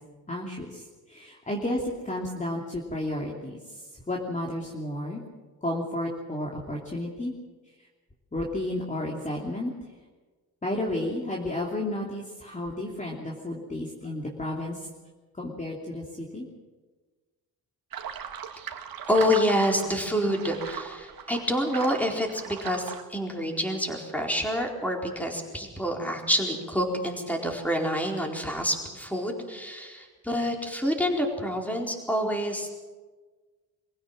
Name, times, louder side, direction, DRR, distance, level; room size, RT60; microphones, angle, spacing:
voice 1, 0.3-3.8 4.1-5.2 5.6-7.3 8.3-9.7 10.6-14.9 15.3-16.5, left 1 dB, 20° left, -2 dB, 2.9 m, -32 dB
sound 1, 17.9-23.0, right 8 dB, 70° right, 1.8 m, -38 dB
voice 2, 19.1-32.7, equal, 5° left, 1 dB, 4.4 m, -27 dB
24.5 x 16.0 x 7.5 m, 1.3 s
cardioid pair, 100°, 36 cm